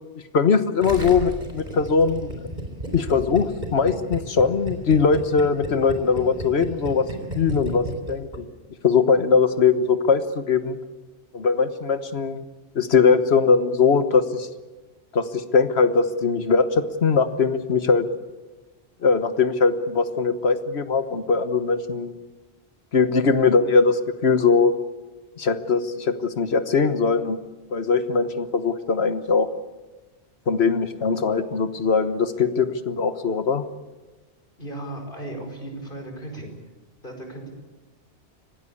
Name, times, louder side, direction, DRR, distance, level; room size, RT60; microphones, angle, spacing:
voice 1, 0.3-2.3 2.9-7.0 7.3-8.4 8.8-10.8 11.3-12.4 12.7-14.5 15.1-18.1 19.0-22.1 22.9-24.7 25.4-27.4 27.7-29.5 30.5-33.6, left 5 dB, 70° left, 11 dB, 1.5 m, -21 dB
Gurgling, 0.8-8.4 8.6-8.7, right 1 dB, 40° right, 4.2 m, -33 dB
voice 2, 34.6-36.5 37.0-37.5, right 1 dB, 50° left, 3 dB, 5.4 m, -36 dB
25.0 x 18.0 x 8.6 m, 1.2 s
omnidirectional pair, 1.1 m